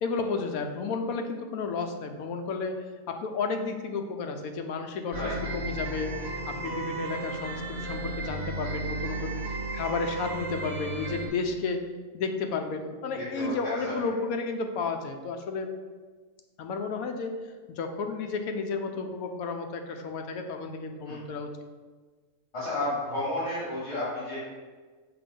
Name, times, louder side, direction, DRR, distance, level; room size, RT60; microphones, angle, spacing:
voice 1, 0.0-6.1 6.5-11.9 12.1-15.7 16.6-17.3 17.7-21.5, left 4 dB, 80° left, 5 dB, 1.1 m, -32 dB
sound 1, 5.1-11.3, right 2 dB, 55° right, 1.0 m, -34 dB
voice 2, 13.1-13.9 21.1-21.2 22.5-24.4, left 1 dB, 60° left, -11 dB, 2.5 m, -32 dB
6.8 x 2.9 x 5.2 m, 1.4 s
omnidirectional pair, 1.5 m